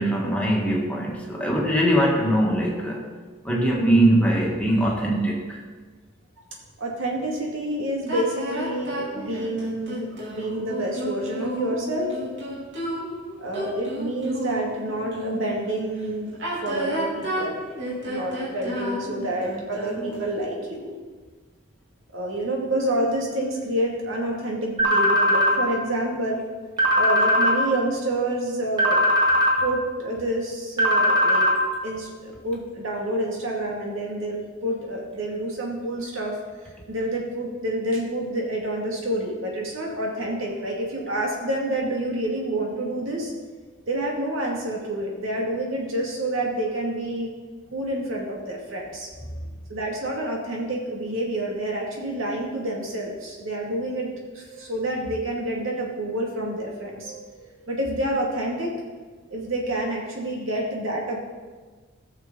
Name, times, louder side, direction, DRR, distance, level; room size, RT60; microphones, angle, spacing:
voice 1, 0.0-3.1 3.4-5.6, right 1 dB, 5° left, -3 dB, 1.8 m, -21 dB
voice 2, 3.5-3.8 6.8-12.1 13.4-16.3 16.6-17.6 18.1-20.9 22.1-26.4 27.0-29.0 29.6-31.5 31.8-43.3 43.9-47.3 47.7-49.3 49.7-54.1 54.3-58.8 59.3-61.2, right 1 dB, 75° right, -2 dB, 2.5 m, -28 dB
sound 1, 8.1-15.6 16.3-20.3, right 1 dB, 60° right, 3.2 m, -31 dB
sound 2, 24.8-25.6 26.8-27.6 28.8-29.6 30.8-31.6, equal, 20° right, 1.8 m, -19 dB
16.5 x 6.8 x 4.1 m, 1.4 s
head